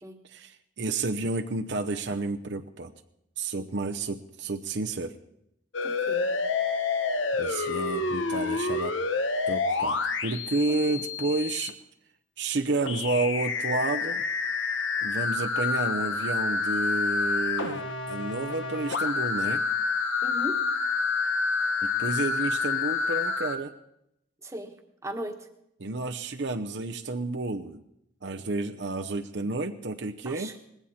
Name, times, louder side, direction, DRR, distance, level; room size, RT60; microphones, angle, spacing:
voice 1, 0.3-2.9 3.4-5.1 7.4-8.9 9.5-11.7 12.4-14.2 15.0-19.6 22.0-23.7 25.8-27.8 28.2-30.5, right 3 dB, 65° right, 6 dB, 0.8 m, -30 dB
sound 1, 5.7-11.7 12.9-23.6, left 4 dB, 85° left, 1.3 m, -28 dB
voice 2, 5.8-6.4 10.7-11.0 20.2-20.6 24.4-24.7 25.0-25.5 30.2-30.5, right 1 dB, 15° right, 5 dB, 1.4 m, -38 dB
20.0 x 16.0 x 4.3 m, 0.80 s
head